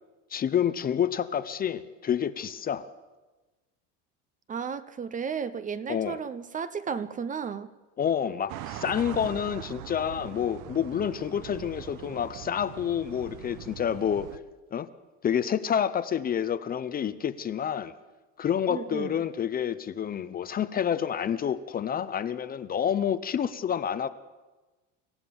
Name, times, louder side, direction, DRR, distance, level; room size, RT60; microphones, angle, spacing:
voice 1, 0.3-2.9 5.9-6.2 8.0-14.3 14.7-14.9 15.2-17.9 18.4-24.1, left 8 dB, 25° left, 0.7 m, -28 dB
voice 2, 4.5-7.7 18.7-19.1, right 6 dB, 20° right, 0.7 m, -33 dB
sound 1, 8.5-14.4, right 13 dB, 60° right, 1.0 m, -42 dB
25.5 x 15.0 x 7.1 m
cardioid pair, 140°, 35 cm